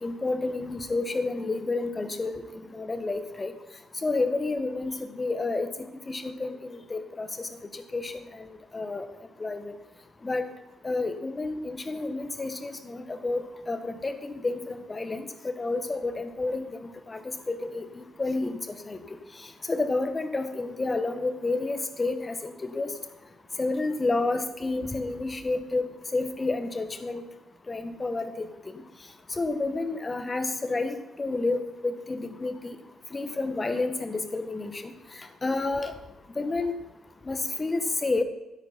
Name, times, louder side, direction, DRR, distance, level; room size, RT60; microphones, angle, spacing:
voice 1, 0.0-3.5 4.0-5.7 6.1-9.1 9.4-9.7 10.2-10.4 10.8-17.2 17.5-19.0 19.7-22.9 23.6-27.2 27.7-28.5 29.4-32.7 33.1-34.9 35.4-35.9 36.4-36.7 37.3-38.2, left 3 dB, 30° left, 8 dB, 1.6 m, -30 dB
12.5 x 11.0 x 4.4 m, 1.0 s
hypercardioid pair, 40°, 0 cm